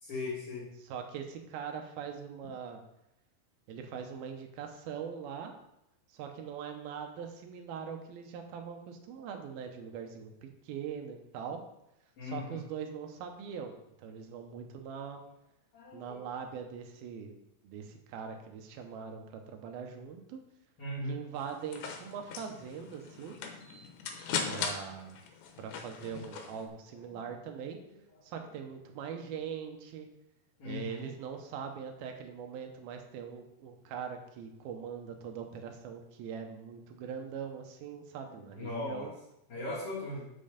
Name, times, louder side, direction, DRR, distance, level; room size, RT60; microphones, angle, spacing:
voice 1, 0.0-0.7 12.2-12.6 15.7-16.2 20.8-21.2 24.3-24.6 27.1-27.3 30.6-31.1 38.2-39.1 39.5-40.3, left 2 dB, 45° left, -8 dB, 2.5 m, -39 dB
voice 2, 0.8-2.8 3.7-5.5 6.1-11.6 12.2-15.2 15.9-17.4 17.6-20.4 21.0-23.4 24.5-25.2 25.6-27.8 28.2-30.1 30.6-39.1, right 7 dB, 80° right, 4 dB, 2.8 m, -42 dB
sound 1, 21.4-26.7, left 6 dB, 80° left, 2.8 m, -39 dB
7.6 x 6.5 x 5.1 m, 0.85 s
omnidirectional pair, 4.4 m